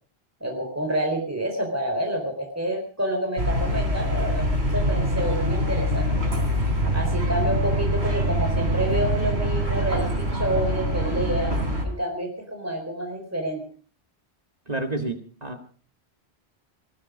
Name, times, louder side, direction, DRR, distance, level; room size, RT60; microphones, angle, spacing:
voice 1, 0.4-6.1 6.9-11.5 11.8-13.6, equal, 15° right, 1 dB, 4.1 m, -28 dB
sound 1, 3.4-11.8, equal, 80° right, 3.9 m, -24 dB
voice 2, 14.7-15.6, right 2 dB, 40° right, 5 dB, 1.8 m, -30 dB
20.0 x 14.0 x 5.1 m, 0.41 s
omnidirectional pair, 1.1 m